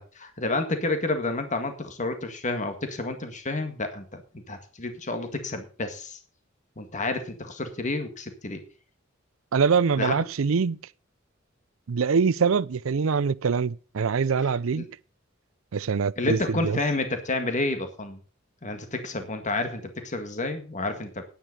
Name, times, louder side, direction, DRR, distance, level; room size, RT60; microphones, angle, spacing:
voice 1, 0.0-4.2 4.5-6.2 6.8-8.6 10.0-10.1 14.4-14.9 16.2-18.2 18.6-21.2, left 2 dB, 40° left, 1.8 m, -30 dB
voice 2, 9.5-10.8 11.9-14.9 15.7-16.8, right 5 dB, 80° right, 0.5 m, -24 dB
10.0 x 9.2 x 6.5 m
head